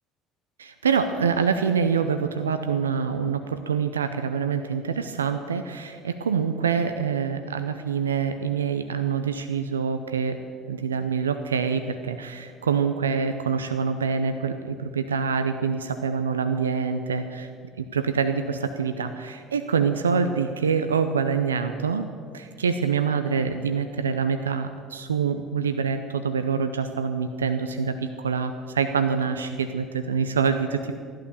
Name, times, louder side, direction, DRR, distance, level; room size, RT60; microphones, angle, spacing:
voice 1, 0.6-10.4 10.7-17.5 17.8-22.1 22.3-30.9, right 6 dB, 85° right, 9 dB, 0.6 m, -25 dB
15.0 x 11.5 x 7.0 m, 2.1 s
figure-of-eight pair, 60°, 0 cm